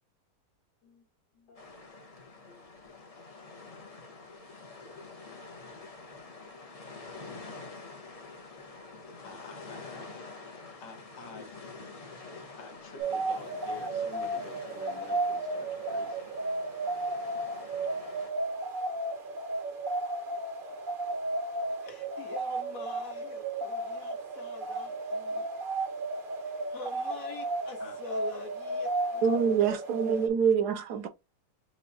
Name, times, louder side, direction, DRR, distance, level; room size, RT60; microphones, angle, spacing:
voice 1, 1.3-1.7 2.3-2.6 9.2-11.5 12.6-16.2 27.8-28.0, left 3 dB, 85° left, 1.9 m, -50 dB
sound 1, 1.5-18.3, left 3 dB, 35° left, 0.6 m, -47 dB
sound 2, 13.0-30.3, right 2 dB, 50° right, 0.6 m, -34 dB
voice 2, 21.8-25.5 26.3-29.8 30.1-30.2, left 4 dB, 55° left, 1.6 m, -46 dB
voice 3, 29.2-31.1, right 7 dB, 75° right, 1.1 m, -26 dB
6.8 x 2.5 x 2.7 m
omnidirectional pair, 1.8 m